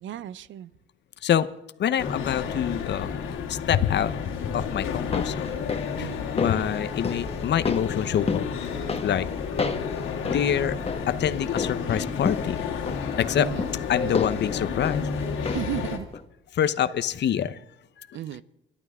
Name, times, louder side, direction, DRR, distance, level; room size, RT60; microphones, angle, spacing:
voice 1, 0.0-0.7 6.0-6.3 13.4-13.7 15.5-16.1 18.1-18.4, right 11 dB, 75° right, 0.8 m, -34 dB
voice 2, 1.8-4.1 4.4-5.6 6.0-8.4 9.0-9.3 10.3-12.6 13.2-15.1 16.5-17.6 18.0-18.2, left 9 dB, 60° left, 1.0 m, -26 dB
sound 1, 2.0-16.0, left 6 dB, 90° left, 2.6 m, -31 dB
sound 2, 4.8-15.9 16.1-16.2, left 4 dB, 30° left, 1.8 m, -33 dB
29.5 x 12.0 x 3.7 m
cardioid pair, 90°, 20 cm